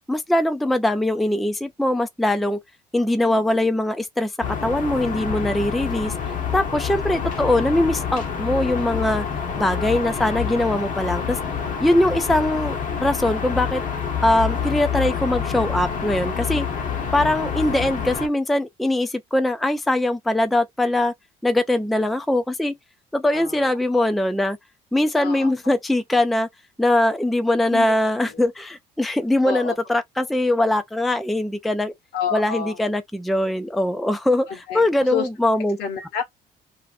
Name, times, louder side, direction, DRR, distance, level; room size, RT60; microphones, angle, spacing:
voice 1, 0.1-2.6 2.9-4.3 4.6-6.1 6.5-9.2 9.6-11.4 11.8-13.8 14.2-16.7 17.1-21.1 21.4-22.7 23.1-24.6 24.9-26.5 26.8-31.9 32.3-35.8, left 1 dB, ahead, 0.3 m, -21 dB
sound 1, 4.4-18.3, left 7 dB, 50° left, 0.8 m, -27 dB
voice 2, 23.3-23.7 25.2-25.5 27.7-27.9 29.4-29.7 32.1-32.8 34.5-34.8 35.1-35.3 35.8-36.2, left 7 dB, 75° left, 1.0 m, -28 dB
2.6 x 2.4 x 2.4 m
cardioid pair, 110°, 17 cm